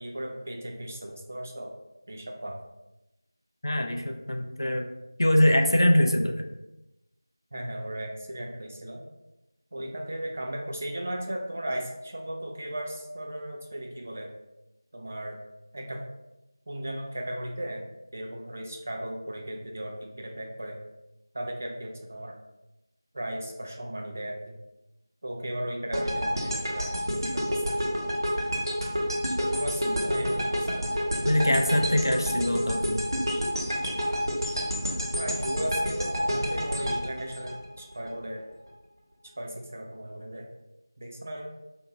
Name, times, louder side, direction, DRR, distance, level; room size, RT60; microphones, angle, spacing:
voice 1, 0.0-1.7 2.1-2.6 7.5-9.0 9.7-14.3 14.9-15.4 15.7-16.1 16.7-17.8 18.1-20.8 21.3-22.4 23.1-24.5 25.2-28.1 29.4-32.3 34.1-34.4 35.2-38.5 39.4-40.5 41.0-41.5, right 1 dB, 30° right, 1 dB, 0.3 m, -36 dB
voice 2, 3.6-4.9 5.2-6.4 31.2-33.1, left 1 dB, 65° left, 3 dB, 0.4 m, -23 dB
sound 1, 25.9-38.1, equal, 65° right, 0.8 m, -29 dB
2.8 x 2.2 x 3.8 m, 0.95 s
figure-of-eight pair, 170°, 2 cm